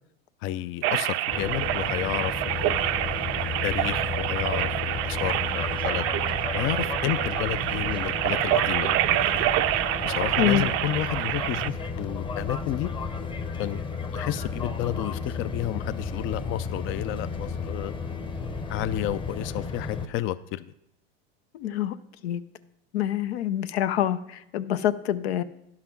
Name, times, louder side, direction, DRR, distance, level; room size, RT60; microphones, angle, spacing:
voice 1, 0.4-2.9 3.6-6.1 6.5-9.4 10.0-12.9 13.6-13.8 14.1-17.9 18.7-20.7, left 13 dB, 40° left, 14 dB, 0.4 m, -31 dB
sound 1, 0.8-11.7, right 14 dB, 50° right, 0.5 m, -27 dB
sound 2, 1.3-20.1, left 4 dB, 15° left, 0.8 m, -33 dB
voice 2, 21.5-22.0 22.2-22.4 22.9-25.4, left 11 dB, 85° left, 12 dB, 0.6 m, -26 dB
10.5 x 5.8 x 5.9 m, 0.80 s
supercardioid pair, 105°, 31 cm